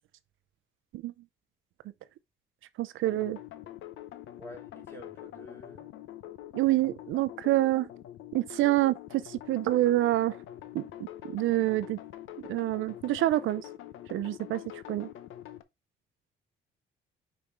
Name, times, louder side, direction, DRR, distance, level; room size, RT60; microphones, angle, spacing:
voice 1, 2.8-3.4 6.5-7.9 8.3-10.4 10.7-10.8 11.3-12.0 12.5-13.7 14.1-15.1, right 15 dB, 80° right, 0.5 m, -27 dB
sound 1, 3.1-15.6, left 12 dB, 85° left, 0.8 m, -45 dB
voice 2, 4.4-5.9, left 1 dB, 10° left, 3.2 m, -48 dB
5.1 x 4.8 x 4.2 m
cardioid pair, 90°, 20 cm